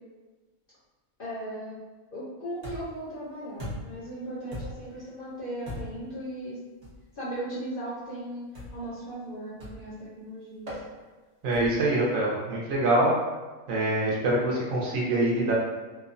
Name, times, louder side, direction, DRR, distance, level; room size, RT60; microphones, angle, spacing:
voice 1, 1.2-1.8 2.1-6.6 7.1-8.5 8.7-10.7, right 1 dB, 55° left, -9 dB, 0.6 m, -37 dB
sound 1, 2.6-3.1 3.6-4.0 4.5-5.0 5.7-6.1 6.8-7.0 8.5-8.9 9.6-10.0 10.7-10.9 11.5-11.9, left 1 dB, 35° right, 0.7 m, -39 dB
voice 2, 11.4-13.1 13.7-15.5, right 1 dB, 70° right, -5 dB, 1.0 m, -25 dB
3.0 x 2.0 x 2.5 m, 1.3 s
omnidirectional pair, 1.5 m